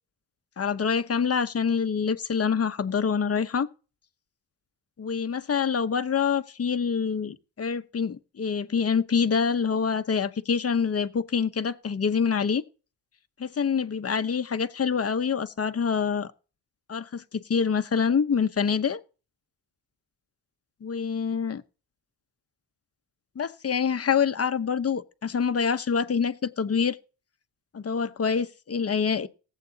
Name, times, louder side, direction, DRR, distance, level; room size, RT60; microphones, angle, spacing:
voice 1, 0.6-3.7 5.0-12.6 13.4-16.3 16.9-19.0 20.8-21.6 23.4-27.0 27.7-29.3, left 6 dB, 35° left, 1.0 m, -26 dB
18.5 x 8.3 x 2.9 m
cardioid pair, 90°, 43 cm